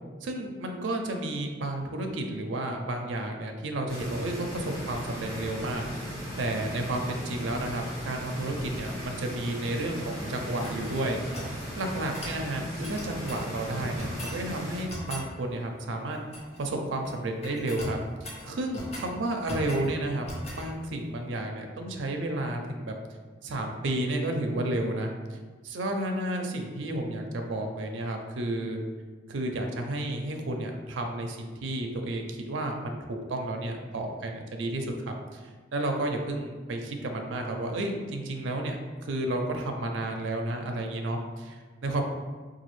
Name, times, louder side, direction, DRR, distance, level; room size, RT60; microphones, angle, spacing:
voice 1, 0.2-5.8 6.4-11.5 11.8-16.2 16.6-18.0 18.4-22.9 23.4-25.4 25.6-28.8 29.3-33.0 33.3-35.4 35.7-38.8 39.0-42.0, right 1 dB, 75° right, 3 dB, 0.4 m, -32 dB
sound 1, 3.9-14.8, equal, ahead, 1.3 m, -37 dB
sound 2, 10.3-11.6 12.1-12.4 12.8-13.5 14.0-14.4 14.9-15.3 16.1-16.7 17.0-17.2 17.4-19.1 19.5-19.9 20.2-20.7, equal, 35° left, 0.7 m, -39 dB
4.0 x 2.4 x 3.1 m, 1.4 s
head